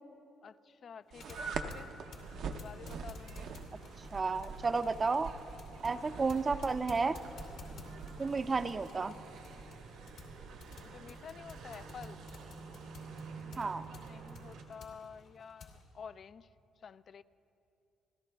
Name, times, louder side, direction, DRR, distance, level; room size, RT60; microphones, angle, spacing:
voice 1, 0.4-1.9 2.5-3.5 5.7-6.1 7.7-8.1 10.9-12.2 13.4-16.5 16.8-17.2, left 6 dB, 50° left, 15 dB, 0.4 m, -51 dB
sound 1, 1.1-15.8, left 4 dB, 75° left, 2.5 m, -55 dB
sound 2, 1.1-14.6, right 5 dB, 70° right, 0.7 m, -47 dB
sound 3, 1.3-14.6, right 4 dB, 90° right, 1.7 m, -49 dB
voice 2, 4.1-5.3 5.8-7.2 8.2-9.2 13.6-13.9, right 4 dB, 30° right, 12 dB, 0.5 m, -32 dB
30.0 x 14.0 x 2.3 m, 2.7 s
cardioid pair, 85°, 0 cm